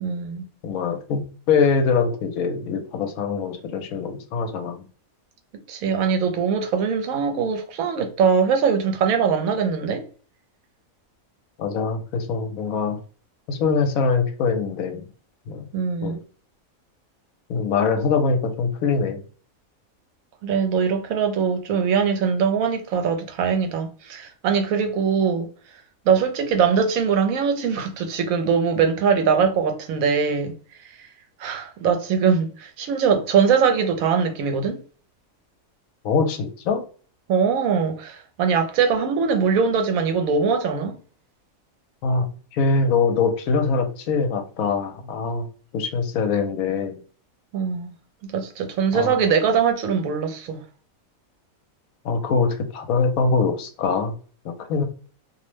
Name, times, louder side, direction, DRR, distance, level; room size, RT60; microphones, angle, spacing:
voice 1, 0.0-0.5 5.7-10.0 15.7-16.2 20.4-25.5 26.1-30.5 31.4-34.8 37.3-40.9 47.5-47.9 48.2-50.6, right 6 dB, 75° right, 1.0 m, -22 dB
voice 2, 0.6-4.8 11.6-13.0 13.5-15.0 15.5-15.7 16.0-16.2 17.5-19.2 36.0-36.8 42.0-42.3 42.5-45.5 45.7-47.0 48.9-49.2 52.0-54.1 54.4-54.8, left 4 dB, 80° left, 1.0 m, -23 dB
2.6 x 2.0 x 3.1 m
omnidirectional pair, 1.5 m